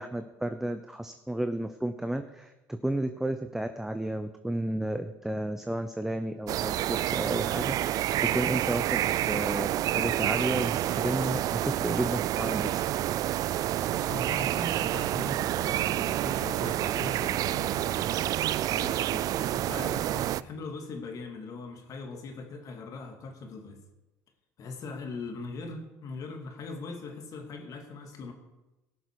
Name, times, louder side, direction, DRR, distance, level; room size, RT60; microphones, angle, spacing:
voice 1, 0.0-12.8, right 1 dB, 5° right, 8 dB, 0.7 m, -32 dB
sound 1, 6.5-20.4, right 13 dB, 55° right, 0.4 m, -28 dB
voice 2, 14.1-18.2 18.7-23.8 24.6-28.3, left 3 dB, 50° left, 4 dB, 2.3 m, -40 dB
17.5 x 6.6 x 4.8 m, 1.0 s
supercardioid pair, 80°, 8 cm